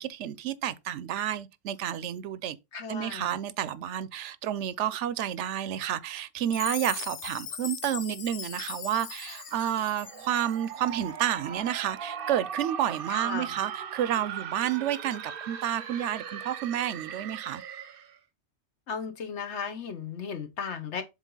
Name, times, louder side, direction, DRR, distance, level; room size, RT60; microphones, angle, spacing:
voice 1, 0.0-2.6 2.9-17.6, right 11 dB, 85° right, 0.9 m, -30 dB
voice 2, 2.7-3.3 13.1-13.5 18.9-21.0, left 6 dB, 75° left, 1.3 m, -35 dB
Chime, 6.5-10.8, left 8 dB, 55° left, 0.4 m, -39 dB
sound 1, 9.3-18.2, right 8 dB, 55° right, 0.8 m, -39 dB
7.4 x 3.3 x 3.8 m
omnidirectional pair, 1.2 m